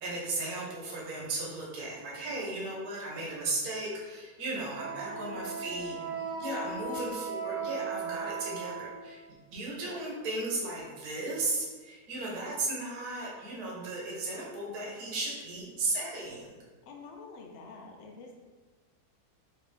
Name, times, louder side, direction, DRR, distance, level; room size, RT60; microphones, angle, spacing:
voice 1, 0.0-5.9 6.4-9.2 9.5-16.5, right 2 dB, 75° right, -4 dB, 1.4 m, -35 dB
Wind instrument woodwind instrument, 4.7-9.2, right 4 dB, 55° right, 1.3 m, -37 dB
voice 2, 5.1-6.3 16.9-18.4, left 3 dB, 80° left, 1 dB, 0.5 m, -48 dB
3.4 x 2.9 x 3.2 m, 1.3 s
omnidirectional pair, 1.7 m